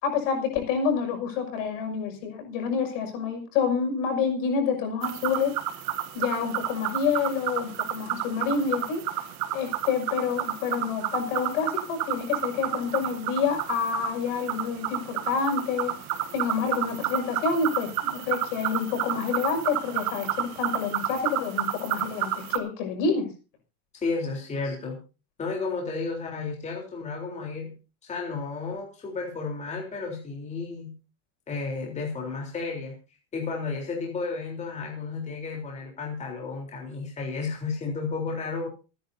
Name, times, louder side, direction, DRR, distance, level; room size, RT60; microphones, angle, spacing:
voice 1, 0.0-5.5 6.1-9.0 9.5-15.9 16.3-23.3, left 6 dB, 65° left, 4 dB, 6.1 m, -28 dB
sound 1, 5.0-22.6, right 12 dB, 40° right, 1.9 m, -31 dB
voice 2, 23.9-25.0 25.4-27.7 28.0-30.9 31.5-32.9 33.3-38.7, left 4 dB, 15° left, -1 dB, 3.6 m, -32 dB
27.5 x 10.5 x 2.7 m, 0.33 s
supercardioid pair, 175°, 42 cm